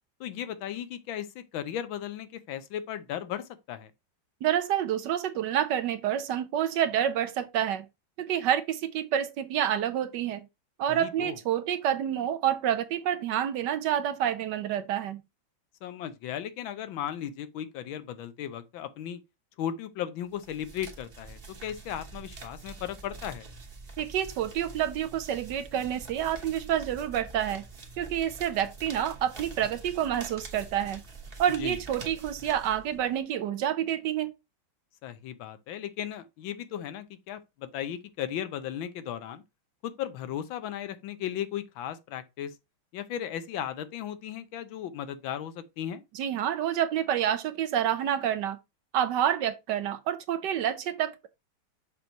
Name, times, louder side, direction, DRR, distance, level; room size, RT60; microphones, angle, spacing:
voice 1, 0.2-3.9 10.9-11.4 15.8-19.2 19.6-23.4 31.6-31.8 35.0-39.4 39.8-42.6 42.9-46.0, left 10 dB, 80° left, 1.5 m, -36 dB
voice 2, 4.4-7.9 8.2-10.4 10.8-15.2 24.0-27.6 28.0-31.0 31.4-34.3 46.1-48.6 48.9-51.1, right 10 dB, 70° right, 1.1 m, -28 dB
sound 1, 20.3-33.2, right 4 dB, 35° right, 1.2 m, -45 dB
6.7 x 3.0 x 5.2 m
omnidirectional pair, 2.2 m